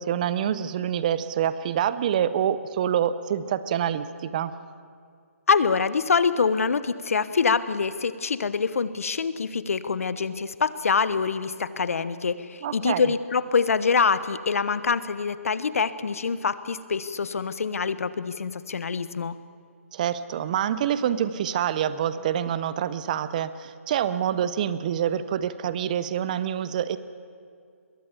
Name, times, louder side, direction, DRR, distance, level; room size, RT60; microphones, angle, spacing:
voice 1, 0.0-4.5 12.6-13.1 19.9-27.0, right 9 dB, 30° right, 15 dB, 0.7 m, -26 dB
voice 2, 5.5-19.3, left 5 dB, 70° left, 15 dB, 1.1 m, -25 dB
21.5 x 16.0 x 8.3 m, 2.3 s
hypercardioid pair, 160°, 8 cm